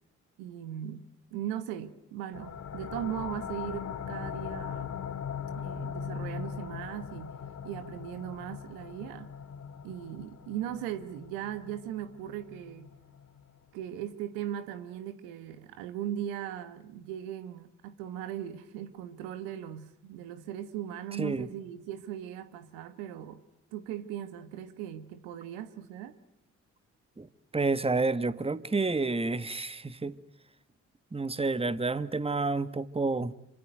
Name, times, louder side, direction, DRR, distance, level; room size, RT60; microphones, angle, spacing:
voice 1, 0.4-5.0 5.6-7.4 7.6-9.3 9.8-12.9 13.7-23.4 23.7-26.2, right 11 dB, 80° right, 1.3 m, -38 dB
sound 1, 2.3-13.7, left 7 dB, 50° left, 1.7 m, -40 dB
voice 2, 27.5-30.1 31.1-33.3, right 3 dB, 15° right, 1.4 m, -29 dB
26.5 x 24.5 x 7.8 m
hypercardioid pair, 45°, 35 cm